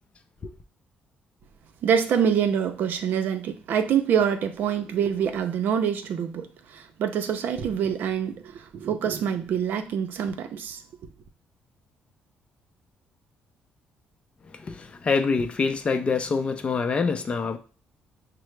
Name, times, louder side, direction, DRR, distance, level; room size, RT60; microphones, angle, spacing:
voice 1, 1.8-11.1, right 8 dB, 70° right, 0.5 m, -26 dB
voice 2, 14.6-17.6, left 4 dB, 35° left, 0.4 m, -25 dB
5.6 x 2.0 x 3.1 m
cardioid pair, 105°, 3 cm